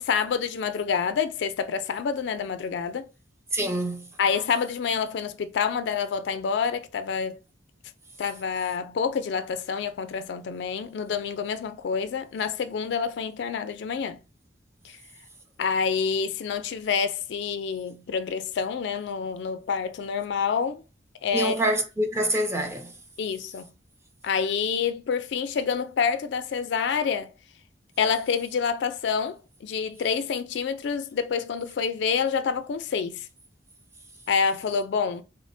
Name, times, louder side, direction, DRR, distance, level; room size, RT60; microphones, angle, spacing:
voice 1, 0.0-3.1 4.2-7.4 8.2-14.2 14.8-15.0 15.6-20.8 21.2-21.6 23.2-23.7 24.2-27.3 28.0-33.2 34.3-35.2, left 6 dB, 65° left, 0.3 m, -27 dB
voice 2, 3.5-4.1 21.3-22.9, right 1 dB, 15° right, 0.5 m, -26 dB
3.7 x 2.1 x 2.6 m
head